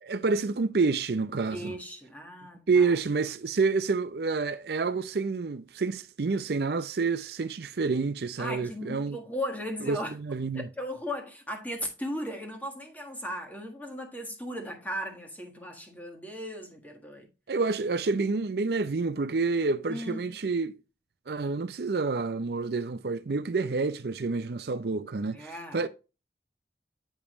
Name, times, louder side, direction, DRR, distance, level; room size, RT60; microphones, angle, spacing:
voice 1, 0.0-1.8 2.7-9.2 9.8-10.7 17.5-20.8 21.3-25.9, right 4 dB, 65° right, 0.5 m, -28 dB
voice 2, 1.5-2.9 8.4-10.1 10.5-17.3 19.9-20.4 25.3-25.9, equal, 10° left, 1.6 m, -37 dB
8.4 x 5.2 x 3.1 m
head